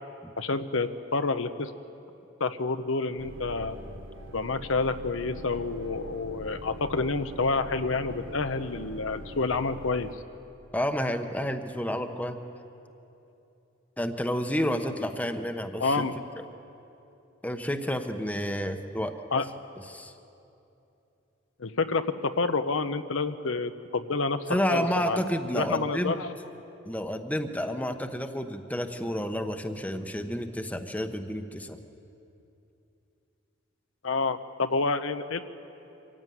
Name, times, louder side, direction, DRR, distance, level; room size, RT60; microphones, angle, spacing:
voice 1, 0.4-1.7 2.4-3.8 4.3-10.1 15.8-16.1 19.3-19.5 21.6-24.4 24.7-25.2 25.5-26.3 34.0-35.4, left 3 dB, 75° left, 9 dB, 0.9 m, -28 dB
sound 1, 3.2-10.1, right 1 dB, 75° right, 1.5 m, -43 dB
voice 2, 10.7-12.4 14.0-16.0 17.4-19.1 19.9-20.1 24.5-26.2 26.8-31.8, equal, 5° left, 6 dB, 1.0 m, -30 dB
25.5 x 15.5 x 9.4 m, 2.8 s
head